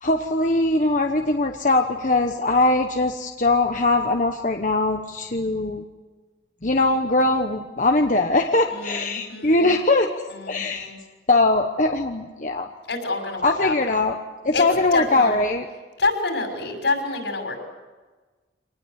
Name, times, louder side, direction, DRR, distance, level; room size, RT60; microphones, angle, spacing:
voice 1, 0.0-5.8 6.6-10.9 11.3-12.7 13.4-14.2 14.4-15.7, left 2 dB, 45° left, 4 dB, 1.1 m, -21 dB
voice 2, 8.7-9.7 10.3-11.0 12.9-13.7 14.5-14.6 14.9-15.4 16.0-17.6, left 3 dB, 80° left, 4 dB, 6.1 m, -27 dB
26.5 x 19.5 x 8.2 m, 1.3 s
head